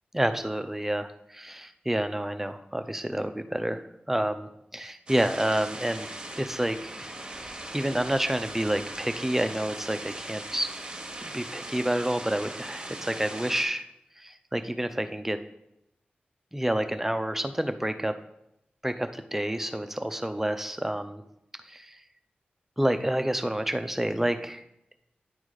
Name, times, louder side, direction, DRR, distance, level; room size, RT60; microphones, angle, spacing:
voice 1, 0.1-6.1 6.4-7.1 7.4-10.7 11.2-13.9 14.2-15.4 16.5-18.2 18.8-21.2 21.6-22.0 22.8-24.6, right 1 dB, 10° right, 9 dB, 0.5 m, -29 dB
sound 1, 5.1-13.6, right 1 dB, 25° right, 1.2 m, -39 dB
9.8 x 4.0 x 4.8 m, 0.82 s
wide cardioid pair, 90°, 3 cm